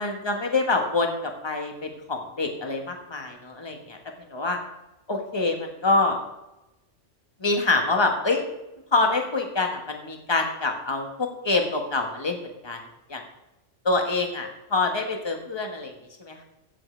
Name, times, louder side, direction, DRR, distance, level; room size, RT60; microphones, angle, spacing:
voice 1, 0.0-4.0 4.3-4.6 5.1-6.2 7.4-8.5 8.9-12.8 13.1-13.2 13.8-15.9 16.2-16.4, left 3 dB, 20° left, 3 dB, 1.4 m, -26 dB
15.5 x 7.7 x 3.3 m, 0.93 s
omnidirectional pair, 1.3 m